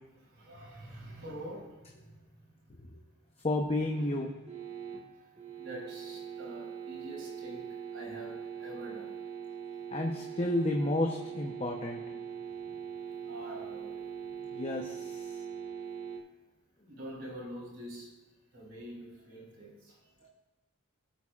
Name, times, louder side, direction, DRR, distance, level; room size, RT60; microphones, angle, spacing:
voice 1, 0.4-1.7 5.6-8.4 8.6-9.2 13.3-14.0 14.2-14.3 16.9-18.1 18.5-19.7 20.2-20.3, right 1 dB, 60° right, -2 dB, 3.6 m, -45 dB
voice 2, 3.4-4.3 9.9-12.0 14.5-15.2, left 1 dB, 30° left, 1 dB, 0.8 m, -31 dB
sound 1, 3.9-16.2, right 8 dB, 30° right, 1.4 m, -42 dB
17.5 x 8.4 x 2.4 m, 1.1 s
head